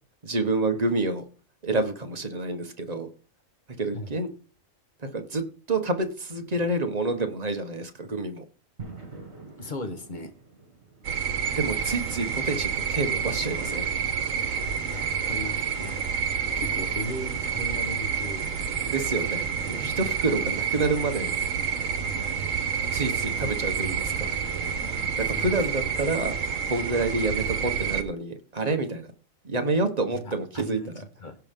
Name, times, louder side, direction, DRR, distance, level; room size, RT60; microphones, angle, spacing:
voice 1, 0.2-1.2 1.6-3.1 3.8-4.3 5.0-8.4 11.6-13.9 18.9-21.3 22.9-24.3 25.2-29.1 29.4-30.9, right 3 dB, 30° right, 1.2 m, -28 dB
sound 1, 8.8-21.7, right 3 dB, 55° right, 2.6 m, -51 dB
voice 2, 9.6-10.3 14.8-16.0 16.3-18.5 19.1-19.3 20.3-20.5 25.2-25.6 30.1-31.4, left 1 dB, 40° left, 1.3 m, -38 dB
sound 2, 11.0-28.0, right 7 dB, 75° right, 1.4 m, -29 dB
16.5 x 5.6 x 3.6 m
omnidirectional pair, 1.4 m